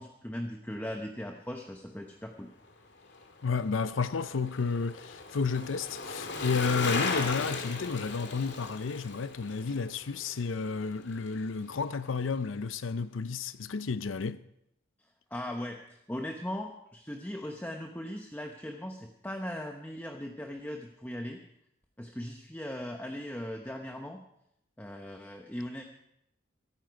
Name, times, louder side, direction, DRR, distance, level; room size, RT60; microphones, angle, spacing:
voice 1, 0.0-2.5 15.3-21.4 22.0-24.2 24.8-25.8, left 1 dB, 10° left, 0.9 m, -39 dB
Bicycle, 3.0-11.4 11.7-11.8, left 3 dB, 60° left, 2.1 m, -37 dB
voice 2, 3.4-14.4, left 5 dB, 85° left, 0.6 m, -31 dB
24.0 x 9.4 x 5.1 m
head